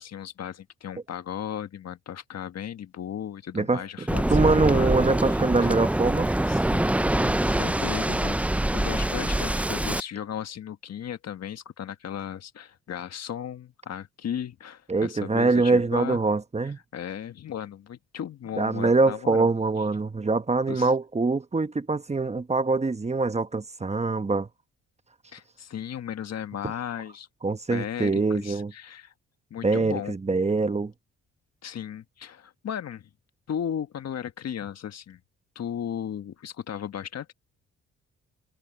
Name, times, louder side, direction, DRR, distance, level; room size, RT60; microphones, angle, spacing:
voice 1, 0.0-4.9 6.5-8.4 8.7-16.2 16.9-19.5 20.7-20.9 25.3-27.3 27.7-29.1 29.5-30.1 31.6-33.1 33.5-35.2 35.5-37.3, left 9 dB, 60° left, 1.5 m, -36 dB
voice 2, 3.5-6.3 14.9-16.8 18.6-24.5 27.4-28.7 29.6-30.9, right 3 dB, 20° right, 1.2 m, -24 dB
Waves surf, 4.1-10.0, right 1 dB, 5° right, 0.5 m, -24 dB
cardioid pair, 75°, 30 cm